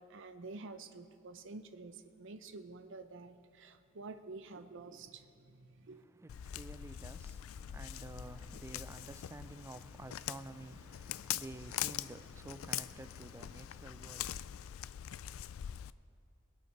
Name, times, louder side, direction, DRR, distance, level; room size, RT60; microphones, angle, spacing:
voice 1, 0.0-6.0, right 3 dB, 60° right, 0.7 m, -49 dB
voice 2, 5.9-14.7, right 2 dB, 15° right, 0.3 m, -51 dB
Walk footsteps, 6.3-15.9, left 11 dB, 75° left, 0.3 m, -43 dB
22.0 x 8.7 x 4.6 m
head